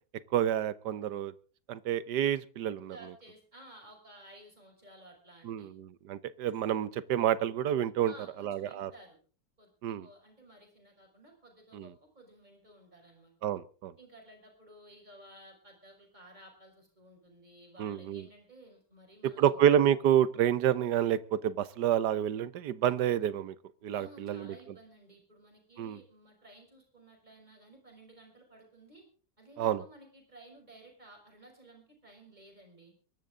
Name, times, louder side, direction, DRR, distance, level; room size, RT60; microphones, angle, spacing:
voice 1, 0.3-1.3 1.7-2.9 5.4-8.1 8.4-8.9 9.8-10.1 11.7-11.9 13.4-13.9 17.8-18.2 19.4-23.5 23.8-24.5 25.8-26.0 29.6-29.8, right 10 dB, 75° right, 17 dB, 1.4 m, -28 dB
voice 2, 2.9-5.7 8.0-9.2 9.6-13.3 14.0-19.6 23.9-29.0 29.4-32.9, right 1 dB, 25° right, 2 dB, 5.8 m, -55 dB
23.0 x 12.5 x 3.8 m, 0.38 s
omnidirectional pair, 1.8 m